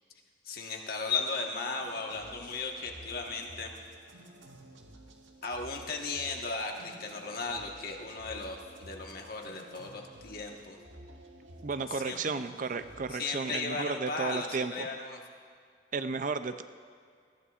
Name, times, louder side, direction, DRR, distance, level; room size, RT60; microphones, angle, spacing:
voice 1, 0.4-3.7 5.4-10.8 11.9-12.2 13.1-15.2, left 4 dB, 50° left, 2 dB, 1.4 m, -36 dB
sound 1, 1.8-13.1, right 1 dB, 90° right, 1.4 m, -52 dB
voice 2, 11.6-14.9 15.9-16.6, right 4 dB, 45° right, 10 dB, 0.4 m, -33 dB
21.0 x 15.0 x 2.5 m, 2.1 s
head